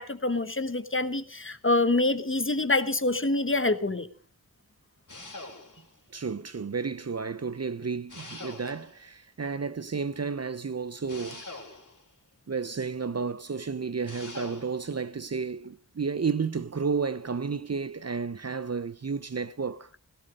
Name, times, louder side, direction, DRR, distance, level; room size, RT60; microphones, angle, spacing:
voice 1, 0.0-4.1, left 2 dB, 35° left, 1.3 m, -26 dB
sound 1, 5.1-6.0 8.1-9.1 11.1-12.1 14.1-14.8, left 2 dB, 55° left, 3.6 m, -43 dB
voice 2, 6.1-11.4 12.5-19.9, right 5 dB, 45° right, 0.7 m, -32 dB
16.5 x 13.5 x 5.1 m
wide cardioid pair, 45°, 36 cm